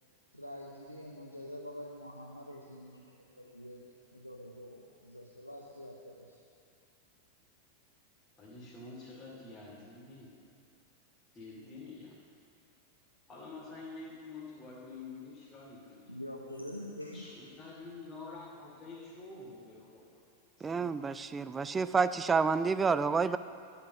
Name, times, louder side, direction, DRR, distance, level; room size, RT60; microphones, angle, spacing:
voice 1, 0.3-3.9 4.1-6.4 16.1-17.3, left 1 dB, 90° left, -2 dB, 0.8 m, -46 dB
voice 2, 8.4-10.4 11.3-12.2 13.3-16.1 17.1-20.2 20.6-21.0, left 3 dB, 20° left, -8 dB, 2.5 m, -48 dB
voice 3, 20.6-23.4, right 5 dB, 15° right, 13 dB, 0.3 m, -29 dB
11.5 x 5.8 x 8.0 m, 2.3 s
figure-of-eight pair, 90°, 0 cm